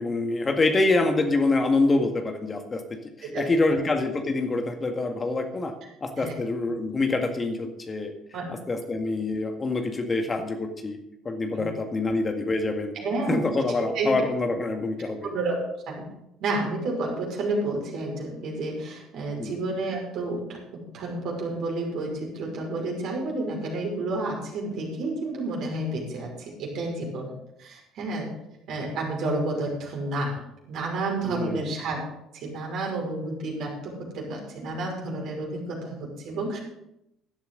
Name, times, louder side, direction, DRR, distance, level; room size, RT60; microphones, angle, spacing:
voice 1, 0.0-5.7 6.0-8.1 8.5-11.0 11.3-13.0 13.3-15.3 19.4-19.6 31.3-31.7, left 2 dB, 25° left, 5 dB, 1.8 m, -26 dB
voice 2, 12.9-13.4 13.9-14.1 15.2-15.6 15.9-16.1 16.4-27.3 27.6-28.3 28.7-30.4 30.7-32.0 32.3-36.6, right 2 dB, 55° right, -1 dB, 5.6 m, -30 dB
16.0 x 12.5 x 3.9 m, 0.82 s
figure-of-eight pair, 55°, 0 cm